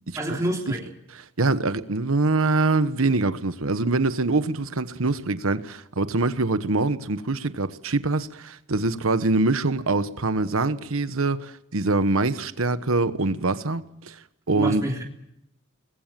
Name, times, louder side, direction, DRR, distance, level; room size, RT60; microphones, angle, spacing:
voice 1, 0.2-0.8 14.5-15.0, right 1 dB, 15° right, 3.2 m, -27 dB
voice 2, 1.4-14.2 14.5-14.8, right 3 dB, 75° right, 1.1 m, -24 dB
25.0 x 21.0 x 7.5 m
head